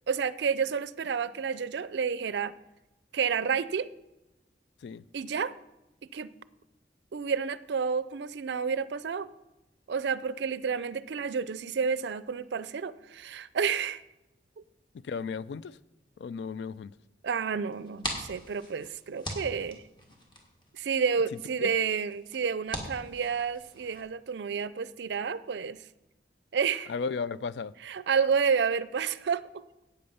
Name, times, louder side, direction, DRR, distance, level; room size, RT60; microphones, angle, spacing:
voice 1, 0.1-2.5 3.1-3.9 5.1-5.5 6.1-6.3 7.1-9.3 9.9-14.0 17.2-19.8 20.7-25.8 26.5-26.9 27.8-29.6, right 6 dB, 70° right, 0.4 m, -30 dB
voice 2, 15.0-15.8 16.2-16.9 21.6-21.7 26.9-27.7, left 5 dB, 70° left, 0.3 m, -34 dB
sound 1, 17.7-24.0, equal, 25° left, 1.6 m, -42 dB
8.6 x 8.5 x 5.6 m
head